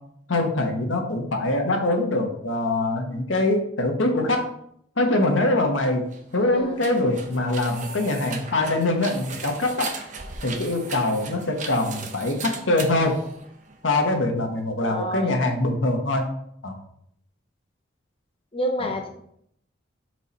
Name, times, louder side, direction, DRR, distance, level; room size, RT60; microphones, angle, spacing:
voice 1, 0.3-4.5 5.0-9.9 10.4-13.2 13.8-16.3 16.6-16.8, left 2 dB, 80° left, 3 dB, 1.1 m, -23 dB
sound 1, 6.0-13.9, right 5 dB, 40° right, 0.7 m, -38 dB
voice 2, 6.4-6.9 14.8-15.4 18.5-19.1, equal, 30° left, 3 dB, 0.7 m, -29 dB
5.6 x 4.6 x 4.1 m, 0.71 s
head